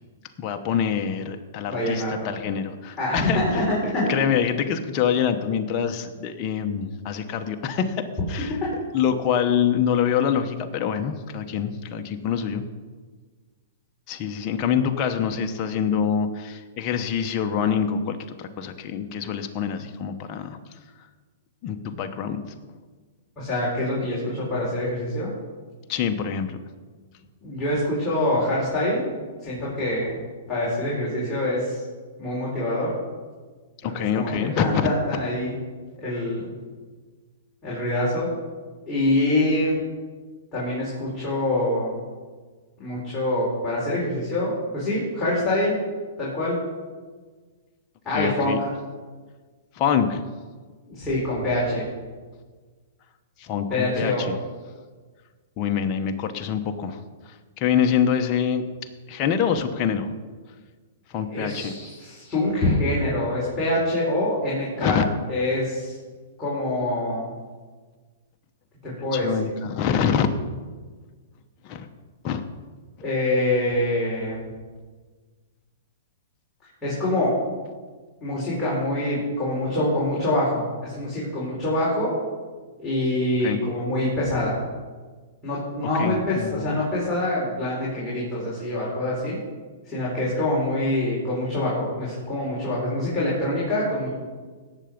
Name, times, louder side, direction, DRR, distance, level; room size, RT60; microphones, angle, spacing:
voice 1, 0.4-8.6 8.9-12.6 14.1-20.6 21.6-22.4 25.9-26.6 33.8-34.9 48.1-48.6 49.7-50.2 53.4-54.4 55.6-58.6 59.1-60.1 61.1-61.7 64.8-65.0 69.1-70.3 71.6-71.9 72.2-72.4 83.4-83.6 85.8-86.7, left 8 dB, 35° left, 5 dB, 1.0 m, -25 dB
voice 2, 1.7-2.1 3.0-4.1 23.4-25.3 27.4-29.0 29.4-30.1 30.5-31.8 32.2-32.9 34.1-35.5 36.0-36.5 37.6-38.3 38.9-39.8 40.5-42.0 42.8-45.7 46.2-46.6 48.0-48.7 50.9-51.9 53.7-54.3 61.3-65.0 65.3-65.9 66.4-67.3 68.8-69.5 73.0-74.5 76.8-77.3 78.2-82.1 82.8-84.6 85.4-89.4 89.8-94.1, left 1 dB, 15° left, -9 dB, 4.3 m, -25 dB
17.5 x 7.0 x 5.2 m, 1.4 s
hypercardioid pair, 140°, 0 cm